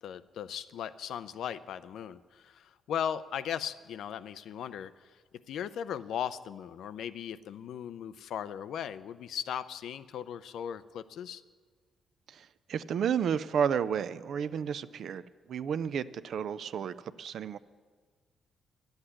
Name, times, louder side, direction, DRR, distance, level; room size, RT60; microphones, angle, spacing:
voice 1, 0.0-5.2 5.5-11.4, left 9 dB, 75° left, 14 dB, 0.5 m, -38 dB
voice 2, 12.3-15.2 15.5-17.6, right 7 dB, 60° right, 15 dB, 0.5 m, -32 dB
12.0 x 8.0 x 10.0 m, 1.5 s
cardioid pair, 150°, 0 cm